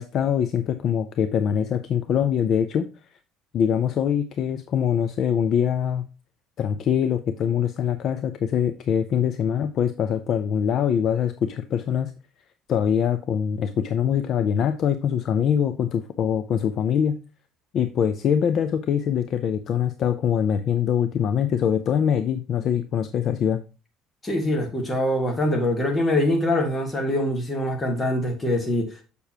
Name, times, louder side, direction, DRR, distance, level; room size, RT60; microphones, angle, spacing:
voice 1, 0.0-2.9 3.5-6.0 6.6-12.1 12.7-17.2 17.7-23.6, left 8 dB, 45° left, 0.5 m, -23 dB
voice 2, 24.2-29.0, left 1 dB, 15° left, 1.6 m, -24 dB
6.8 x 6.6 x 2.9 m
cardioid pair, 155°, 0 cm